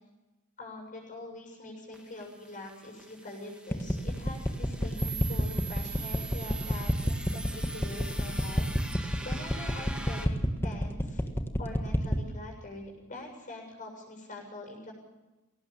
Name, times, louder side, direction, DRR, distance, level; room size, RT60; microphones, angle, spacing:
voice 1, 0.6-8.7 9.2-11.2 11.6-12.8 13.1-14.9, left 2 dB, 35° left, 1 dB, 7.2 m, -44 dB
sound 1, 1.9-10.3, right 3 dB, 5° right, 2.2 m, -43 dB
sound 2, 3.7-12.3, equal, 10° left, 1.5 m, -28 dB
22.0 x 18.0 x 7.3 m, 1.1 s
head